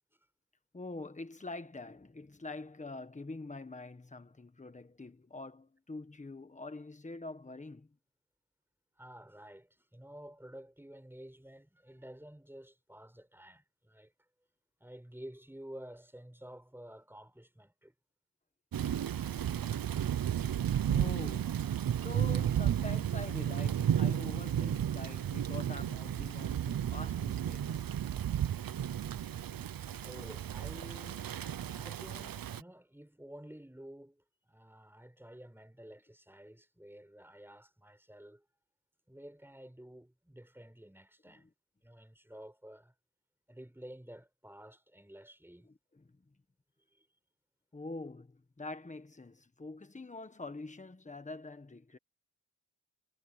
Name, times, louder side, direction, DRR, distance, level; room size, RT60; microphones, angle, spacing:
voice 1, 0.7-7.9 20.8-21.7 22.0-27.9 30.2-30.3 41.2-41.5 45.6-46.2 47.7-52.0, left 2 dB, 20° left, 1.4 m, -45 dB
voice 2, 9.0-14.1 14.8-17.9 30.0-31.5 31.7-38.4 39.1-41.4 41.8-42.9 43.5-45.7 46.9-47.1, right 1 dB, 5° right, 4.8 m, -51 dB
Thunder / Rain, 18.7-32.6, right 10 dB, 70° right, 0.7 m, -33 dB
wide cardioid pair, 165°, 36 cm